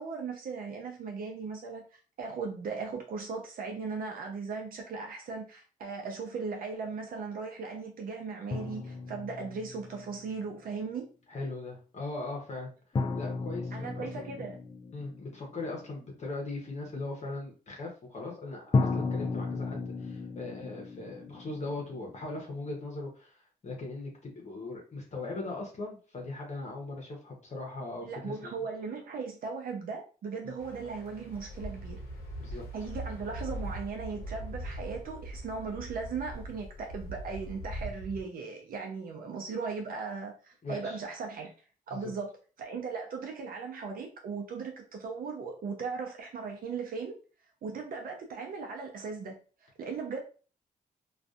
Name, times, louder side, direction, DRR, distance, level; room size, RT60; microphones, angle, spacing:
voice 1, 0.0-11.1 13.7-14.6 28.0-32.0 32.7-41.5 41.9-42.3 42.6-47.2 47.6-49.3 49.6-50.2, right 5 dB, 65° right, 0.6 m, -38 dB
sound 1, 8.5-10.3 13.0-15.8 18.7-22.6, left 3 dB, 30° left, 0.5 m, -34 dB
voice 2, 11.3-12.7 13.1-14.4 14.9-28.5 30.4-30.5 32.4-32.6 40.6-41.0 41.9-42.1, left 2 dB, 45° left, 0.9 m, -39 dB
sound 2, 30.6-38.2, right 1 dB, 75° left, 0.7 m, -41 dB
2.5 x 2.4 x 2.4 m
supercardioid pair, 60°, 16 cm